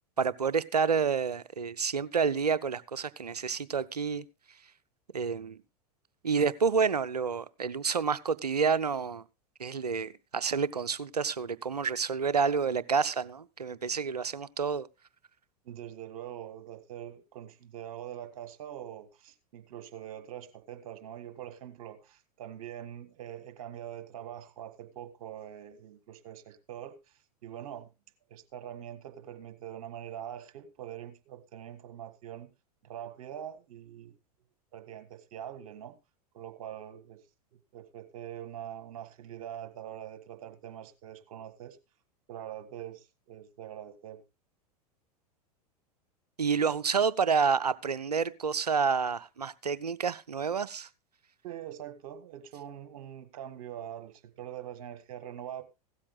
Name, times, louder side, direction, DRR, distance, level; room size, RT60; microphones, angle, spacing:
voice 1, 0.2-4.2 5.1-5.6 6.2-9.2 9.6-14.9 46.4-50.9, right 5 dB, 85° right, 0.6 m, -29 dB
voice 2, 15.6-27.0 27.4-27.9 28.3-32.5 32.8-34.1 34.7-36.0 36.3-37.2 37.5-41.8 42.3-44.2 51.4-55.6, right 10 dB, 60° right, 1.5 m, -43 dB
16.0 x 13.0 x 2.3 m
figure-of-eight pair, 85°, 20 cm